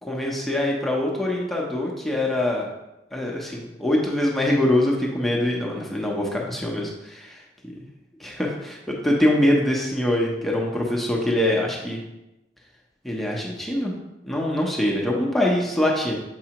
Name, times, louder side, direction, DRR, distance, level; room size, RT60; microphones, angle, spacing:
voice 1, 0.0-2.7 3.1-7.4 7.7-7.8 8.2-12.0 13.0-14.0 14.2-16.2, left 1 dB, ahead, -3 dB, 0.8 m, -24 dB
7.4 x 4.7 x 2.9 m, 0.94 s
head